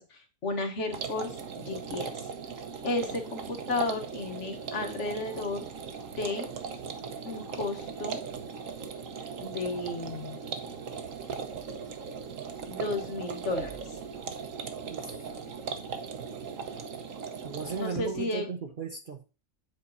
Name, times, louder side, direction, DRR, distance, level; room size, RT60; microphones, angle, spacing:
voice 1, 0.0-2.3 2.8-5.7 6.2-6.5 7.2-8.2 9.4-10.4 12.7-13.7 17.7-18.5, left 2 dB, 55° left, 4 dB, 1.5 m, -33 dB
sound 1, 0.9-17.9, right 6 dB, 65° right, 1.3 m, -38 dB
voice 2, 17.4-19.3, right 5 dB, 45° right, 4 dB, 0.8 m, -36 dB
7.9 x 4.3 x 4.0 m, 0.32 s
omnidirectional pair, 1.5 m